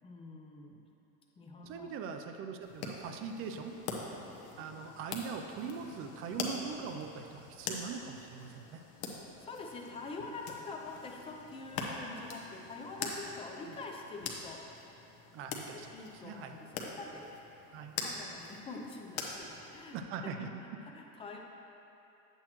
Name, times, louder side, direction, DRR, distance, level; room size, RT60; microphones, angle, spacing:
voice 1, 0.0-0.8 1.4-2.0 8.9-9.0 9.4-14.6 15.7-17.3 17.7-20.0 20.2-20.3 20.6-21.4, left 3 dB, 15° left, 1 dB, 0.5 m, -46 dB
voice 2, 1.7-3.7 4.6-8.8 15.3-15.9 16.2-16.5 17.7-17.9 19.9-20.8, right 6 dB, 35° right, 5 dB, 0.4 m, -41 dB
Stick into soft dirt, 2.6-20.0, left 4 dB, 60° left, 1.0 m, -44 dB
8.6 x 7.9 x 3.0 m, 2.9 s
supercardioid pair, 155°, 39 cm